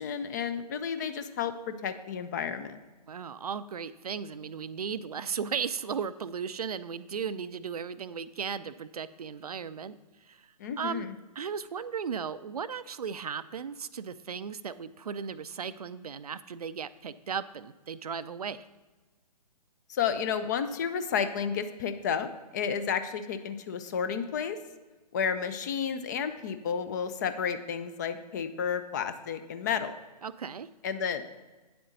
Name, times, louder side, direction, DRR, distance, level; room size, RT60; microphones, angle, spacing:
voice 1, 0.0-2.8 10.6-11.1 19.9-24.6 25.1-29.9 30.8-31.2, left 7 dB, 25° left, 11 dB, 0.5 m, -31 dB
voice 2, 3.1-10.0 10.2-10.5 10.8-11.1 11.4-18.7 30.2-30.7, right 6 dB, 65° right, 14 dB, 0.5 m, -36 dB
9.2 x 7.8 x 3.9 m, 1.2 s
figure-of-eight pair, 130°, 21 cm